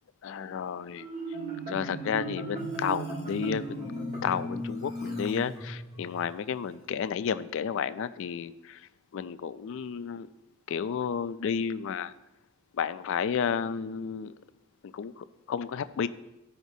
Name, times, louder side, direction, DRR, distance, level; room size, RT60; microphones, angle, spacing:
voice 1, 0.2-1.1 1.7-8.8 9.1-10.3 10.7-12.1 12.7-14.3 14.8-16.1, left 7 dB, 60° left, 14 dB, 0.3 m, -32 dB
Marimba xylophone, 1.0-6.1, right 1 dB, 30° right, 1.5 m, -36 dB
13.5 x 5.0 x 2.7 m, 0.98 s
head